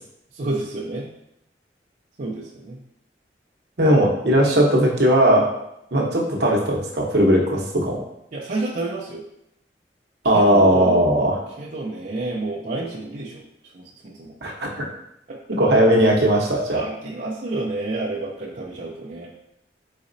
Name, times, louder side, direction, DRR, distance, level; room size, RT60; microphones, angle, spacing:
voice 1, 0.3-1.1 2.2-2.8 8.3-9.2 10.2-11.0 11.6-13.4 13.7-14.3 15.3-15.6 16.7-19.3, right 2 dB, 45° right, -5 dB, 0.5 m, -29 dB
voice 2, 3.8-5.4 5.9-8.0 10.2-11.4 14.4-14.9 15.6-16.8, right 1 dB, 65° right, -1 dB, 0.9 m, -18 dB
4.1 x 4.0 x 2.6 m, 0.82 s
head